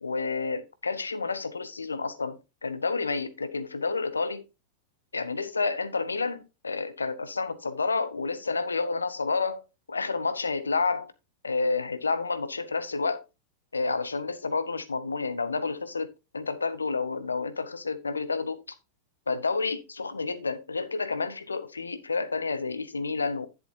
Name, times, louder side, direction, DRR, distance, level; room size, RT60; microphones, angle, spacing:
voice 1, 0.0-4.4 5.1-11.1 11.4-13.2 13.7-18.6 19.3-23.5, left 4 dB, 75° left, 0.8 m, -30 dB
10.5 x 7.2 x 2.8 m
figure-of-eight pair, 90°, 0 cm